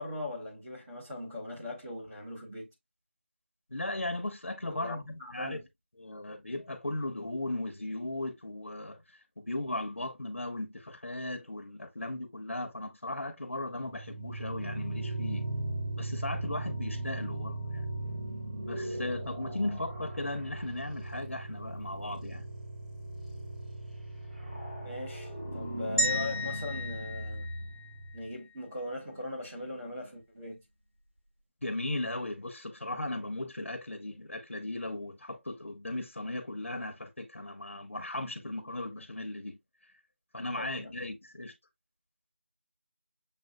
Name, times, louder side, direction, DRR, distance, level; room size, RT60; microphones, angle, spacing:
voice 1, 0.0-2.7 4.6-5.6 24.8-27.5 28.1-30.6 40.6-40.9, left 1 dB, 15° right, 1.1 m, -40 dB
voice 2, 3.7-5.6 6.0-9.0 9.4-15.5 15.9-17.8 18.7-22.4 31.6-39.6 40.3-41.5, left 2 dB, 85° left, 1.2 m, -37 dB
sound 1, 13.6-28.3, right 1 dB, 35° right, 1.9 m, -38 dB
sound 2, 26.0-28.2, left 1 dB, 85° right, 1.7 m, -33 dB
7.3 x 2.7 x 2.4 m
figure-of-eight pair, 175°, 7 cm